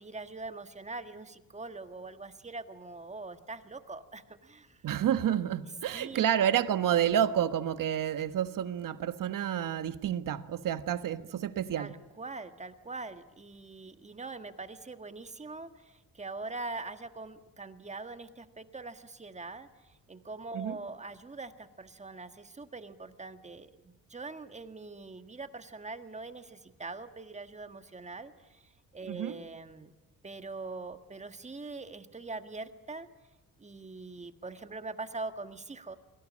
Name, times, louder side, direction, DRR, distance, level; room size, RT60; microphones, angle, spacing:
voice 1, 0.0-4.8 5.3-5.4 5.9-6.2 11.8-29.9 30.2-33.1 33.6-36.0, right 3 dB, 20° right, 1.6 m, -43 dB
voice 2, 4.8-11.9 20.5-20.8 29.1-29.4, right 10 dB, 65° right, 1.4 m, -29 dB
29.5 x 23.0 x 8.6 m
cardioid pair, 135°, 35 cm